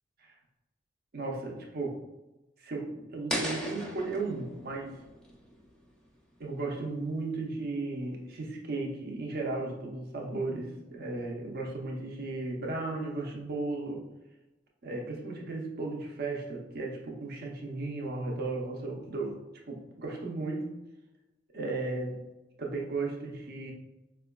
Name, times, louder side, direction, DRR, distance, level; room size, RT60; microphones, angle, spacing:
voice 1, 1.1-2.0 2.6-5.0 6.4-14.1 14.8-19.4 19.7-20.7 21.5-22.2 22.6-23.7, right 3 dB, 55° right, 0 dB, 0.6 m, -35 dB
sound 1, 3.3-6.3, equal, 5° left, 0.5 m, -38 dB
4.3 x 2.3 x 2.2 m, 1.0 s
head